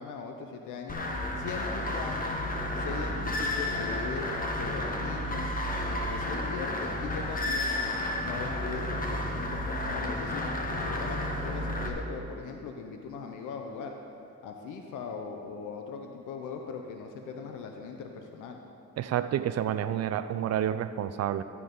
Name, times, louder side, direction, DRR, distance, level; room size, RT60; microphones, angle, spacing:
voice 1, 0.0-2.4 2.8-4.3 4.6-5.5 5.8-7.7 8.2-14.0 14.4-18.6, left 5 dB, 80° left, 3 dB, 0.8 m, -40 dB
sound 1, 0.9-11.9, left 1 dB, 30° left, 1.4 m, -32 dB
voice 2, 19.0-21.4, right 10 dB, 55° right, 12 dB, 0.4 m, -29 dB
13.5 x 9.4 x 3.8 m, 2.7 s
cardioid pair, 90°, 30 cm